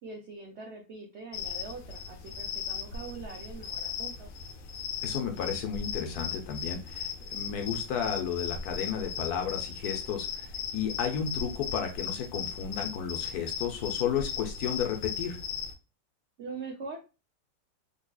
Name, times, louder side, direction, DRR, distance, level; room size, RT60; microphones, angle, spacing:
voice 1, 0.0-4.3 16.4-17.0, right 4 dB, 70° right, 0 dB, 0.6 m, -43 dB
sound 1, 1.3-15.7, left 7 dB, 85° left, 1.4 m, -37 dB
voice 2, 5.0-15.4, left 8 dB, 65° left, 4 dB, 1.1 m, -33 dB
3.9 x 2.8 x 2.3 m, 0.29 s
omnidirectional pair, 1.9 m